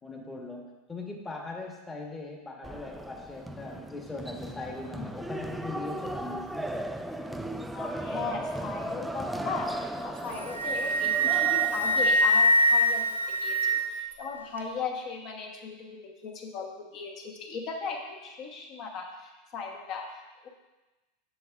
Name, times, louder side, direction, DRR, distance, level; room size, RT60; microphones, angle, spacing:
voice 1, 0.0-6.9, left 3 dB, 15° left, 1 dB, 1.2 m, -40 dB
sound 1, 2.6-12.2, right 1 dB, 5° right, 0.3 m, -36 dB
voice 2, 7.7-20.5, left 5 dB, 45° left, 1 dB, 1.2 m, -38 dB
Wind instrument woodwind instrument, 10.2-14.1, right 1 dB, 85° right, 0.6 m, -24 dB
7.7 x 6.2 x 2.5 m, 1.1 s
hypercardioid pair, 85°, 0 cm